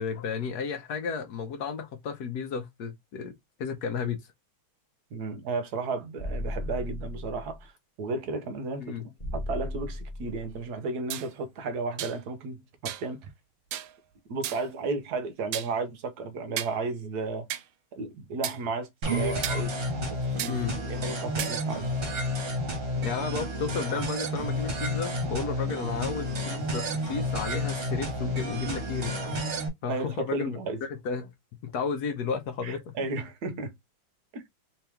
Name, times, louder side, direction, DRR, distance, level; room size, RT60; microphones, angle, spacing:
voice 1, 0.0-3.3 3.6-4.3 8.8-9.1 20.5-20.8 23.0-29.2 29.8-31.3 31.6-33.0, left 5 dB, 65° left, 1.0 m, -33 dB
voice 2, 5.1-7.7 8.0-8.9 9.3-13.3 14.3-17.5 17.9-19.8 20.2-20.6 20.9-21.8 29.9-30.8 32.6-33.7 34.3-34.4, right 3 dB, 65° right, 1.1 m, -33 dB
sound 1, 6.2-7.6 9.2-10.6, left 1 dB, 30° left, 0.9 m, -35 dB
sound 2, 11.1-11.3 12.0-12.2 12.9-13.1 13.7-13.9 14.4-14.7 15.5-15.7 16.6-16.8 17.5-17.6 18.4-18.6 19.4-19.6 20.4-20.5 21.4-21.5, right 11 dB, 80° right, 1.4 m, -34 dB
sound 3, 19.0-29.7, equal, 45° right, 1.3 m, -30 dB
3.4 x 3.0 x 3.4 m
omnidirectional pair, 2.2 m